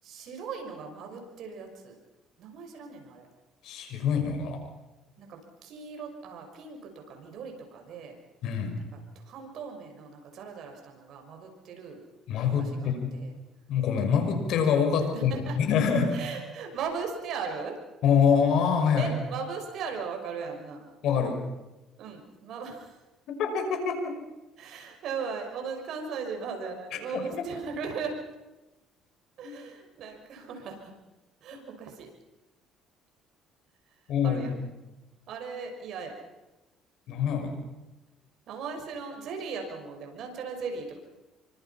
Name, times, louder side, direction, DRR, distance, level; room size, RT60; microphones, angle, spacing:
voice 1, 0.0-1.9 2.4-3.3 5.2-8.2 8.7-8.9 9.1-12.0 12.4-13.4 14.0-14.1 15.1-15.6 16.1-17.8 18.9-20.9 22.0-23.0 24.6-28.1 29.4-30.9 31.4-32.1 34.2-34.5 35.3-36.1 38.5-41.0, right 5 dB, 65° right, 3 dB, 6.1 m, -38 dB
voice 2, 3.6-4.6 8.4-8.8 12.3-13.1 13.7-16.2 18.0-19.1 21.0-21.4 23.3-24.2 27.1-27.5 29.4-29.6 34.1-34.7 37.1-37.5, left 6 dB, 70° left, 5 dB, 5.7 m, -25 dB
26.5 x 24.5 x 5.8 m, 1.1 s
cardioid pair, 100°, 0 cm